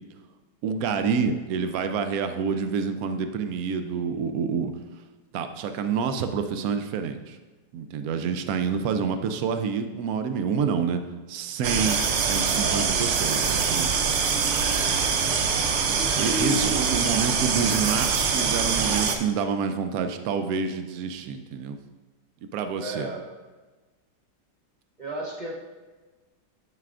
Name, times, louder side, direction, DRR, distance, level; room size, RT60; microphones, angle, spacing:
voice 1, 0.6-4.7 5.3-7.4 7.7-11.0 11.3-13.9 16.2-21.8 22.5-23.1, right 6 dB, 70° right, 8 dB, 0.9 m, -28 dB
sound 1, 11.6-19.2, right 5 dB, 85° right, 0.6 m, -24 dB
voice 2, 22.8-23.3 25.0-25.6, right 1 dB, 40° right, -3 dB, 0.7 m, -33 dB
11.0 x 5.7 x 2.5 m, 1.3 s
omnidirectional pair, 1.9 m